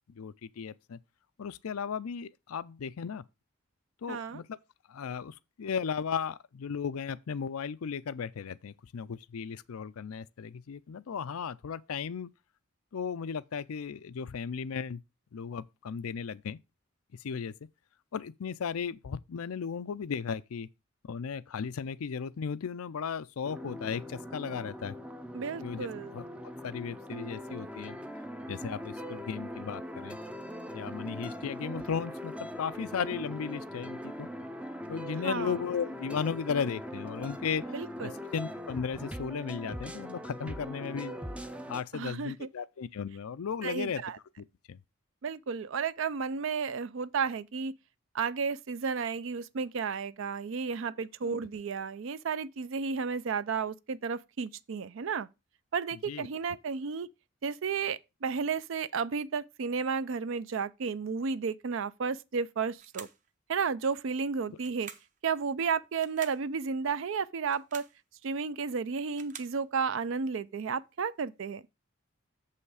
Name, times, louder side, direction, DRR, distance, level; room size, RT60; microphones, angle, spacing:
voice 1, 0.1-1.0 1.4-3.2 4.0-4.6 4.9-12.3 12.9-15.0 15.3-16.6 17.2-17.5 18.1-20.7 21.1-25.0 25.5-26.3 26.6-28.0 28.5-30.2 30.7-34.3 34.9-37.7 38.0-41.2 41.7-44.0 44.7-44.8 51.2-51.4 56.1-56.3, left 6 dB, 90° left, 0.5 m, -35 dB
voice 2, 4.1-4.4 25.3-26.2 35.2-35.5 37.7-38.2 41.9-42.3 43.6-44.2 45.2-47.7 48.1-55.3 55.7-57.1 57.4-63.1 63.5-64.9 65.2-67.8 68.2-71.6, right 5 dB, 65° right, 0.4 m, -33 dB
sound 1, 23.4-41.8, equal, 5° right, 0.4 m, -41 dB
sound 2, 62.8-63.3 64.6-65.2 65.9-66.5 67.4-68.0 68.9-69.6, right 7 dB, 35° right, 0.7 m, -48 dB
7.1 x 5.7 x 4.8 m
head